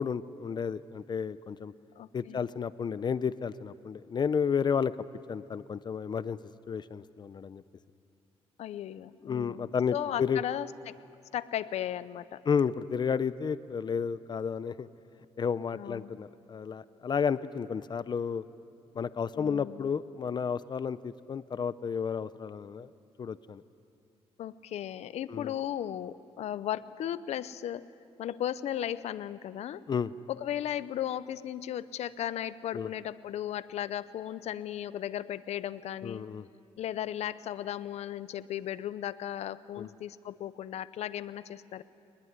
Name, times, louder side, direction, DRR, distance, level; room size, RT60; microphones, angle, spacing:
voice 1, 0.0-1.7 2.1-4.9 5.3-6.4 6.7-7.6 9.2-10.4 12.5-14.9 15.4-18.4 18.9-22.9 23.2-23.6 25.3-25.5 29.9-30.1 32.7-32.9 36.0-36.5 39.8-39.9, left 6 dB, 40° left, 15 dB, 0.6 m, -32 dB
voice 2, 2.0-2.4 8.6-11.0 11.3-12.4 15.7-16.1 19.3-19.9 24.4-27.9 28.2-29.8 30.3-36.2 36.8-41.8, left 11 dB, 85° left, 15 dB, 0.7 m, -36 dB
23.0 x 20.5 x 9.6 m, 2.5 s
cardioid pair, 110°, 11 cm